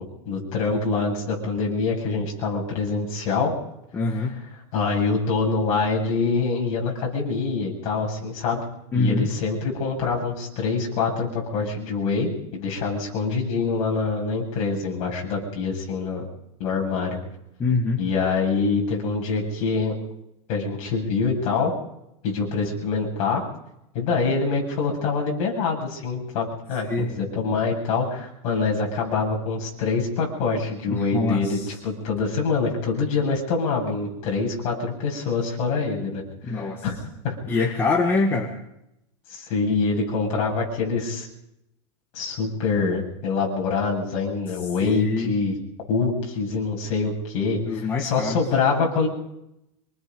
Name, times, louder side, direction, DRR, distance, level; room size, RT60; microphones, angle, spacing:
voice 1, 0.0-3.5 4.7-8.6 8.9-16.3 16.6-17.2 18.0-20.0 20.5-21.7 22.2-23.4 23.9-37.0 37.2-37.6 39.3-41.3 42.1-45.6 45.9-49.1, left 4 dB, 40° left, -1 dB, 7.7 m, -25 dB
voice 2, 3.9-4.4 8.9-9.3 17.6-18.0 26.9-27.1 30.9-31.7 36.4-36.8 37.5-38.5 44.8-45.3 47.7-48.4, left 3 dB, 15° left, 0 dB, 1.8 m, -24 dB
26.0 x 20.0 x 5.4 m, 0.83 s
supercardioid pair, 165°, 17 cm